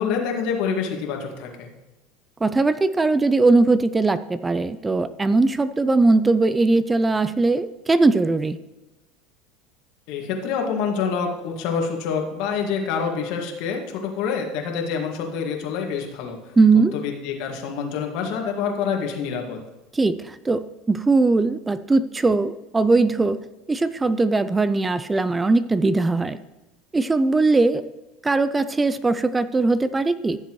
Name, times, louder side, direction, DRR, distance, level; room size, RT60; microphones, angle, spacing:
voice 1, 0.0-1.7 10.1-16.5 16.9-19.6, left 6 dB, 65° left, 2 dB, 1.8 m, -27 dB
voice 2, 2.4-8.6 16.6-16.9 19.9-23.4 23.7-26.4 26.9-27.8 28.2-30.4, right 3 dB, 15° right, 14 dB, 0.4 m, -20 dB
14.5 x 7.0 x 3.1 m, 1.0 s
supercardioid pair, 115°, 0 cm